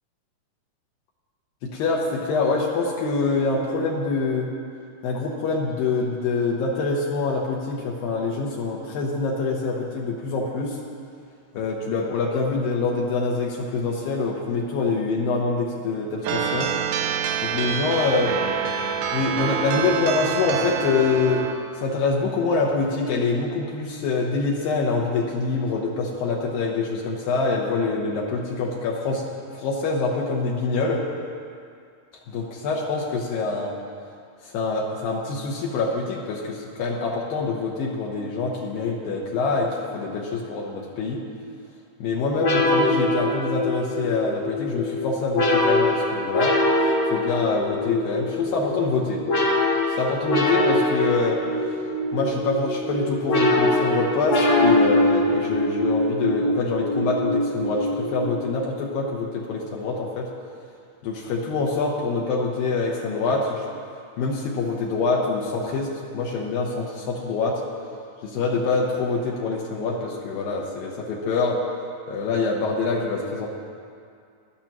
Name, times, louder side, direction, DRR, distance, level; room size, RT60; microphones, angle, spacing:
voice 1, 1.6-4.5 5.0-10.8 11.5-16.7 17.4-18.3 19.1-21.5 21.8-29.3 29.5-31.0 32.3-33.7 34.4-41.2 42.0-46.5 47.1-49.2 50.0-51.4 52.1-60.3 61.0-63.6 64.2-67.6 68.2-71.6 72.1-73.5, left 3 dB, 75° left, -3 dB, 2.6 m, -25 dB
sound 1, 16.2-21.5, right 7 dB, 80° right, 2.7 m, -26 dB
sound 2, 42.4-58.6, left 1 dB, 50° left, 1.6 m, -23 dB
17.5 x 12.0 x 3.0 m, 2.3 s
omnidirectional pair, 4.5 m